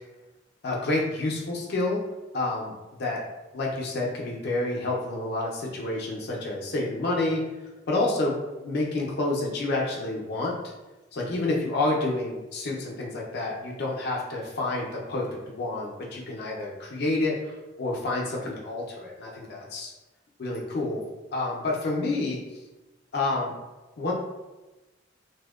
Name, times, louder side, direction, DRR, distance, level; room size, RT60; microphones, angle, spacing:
voice 1, 0.6-2.0 2.3-3.2 3.5-7.4 7.9-8.3 8.6-10.5 11.1-19.9 20.4-21.0 21.3-22.4 23.1-23.5 24.0-24.1, left 2 dB, 55° left, -2 dB, 0.4 m, -29 dB
2.6 x 2.1 x 2.2 m, 1.1 s
head